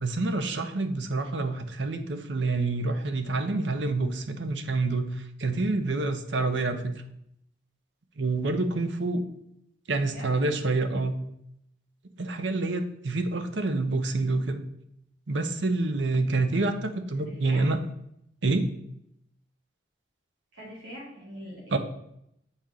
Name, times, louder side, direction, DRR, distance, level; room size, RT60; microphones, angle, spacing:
voice 1, 0.0-7.0 8.2-9.2 9.9-11.2 12.2-14.6 15.3-17.8 18.4-18.7 21.7-21.8, right 3 dB, 70° right, 8 dB, 0.6 m, -27 dB
voice 2, 9.9-10.4 16.9-17.7 20.5-21.8, equal, 85° right, -6 dB, 2.1 m, -43 dB
7.2 x 4.3 x 3.7 m, 0.77 s
head